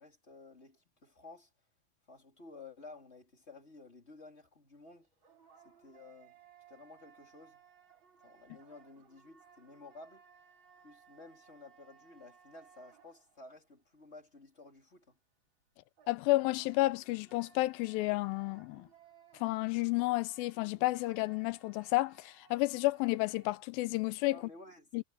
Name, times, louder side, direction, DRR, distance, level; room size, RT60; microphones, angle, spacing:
voice 1, 0.0-1.5 2.1-5.1 5.6-6.4 6.7-7.6 8.2-10.2 10.8-15.2 24.3-25.0, left 3 dB, 20° left, 3.6 m, -54 dB
sound 1, 4.9-13.7 16.0-23.7, right 7 dB, 35° right, 3.2 m, -62 dB
voice 2, 16.1-18.9 19.4-24.4 24.9-25.0, left 20 dB, 90° left, 2.4 m, -31 dB
omnidirectional pair, 4.1 m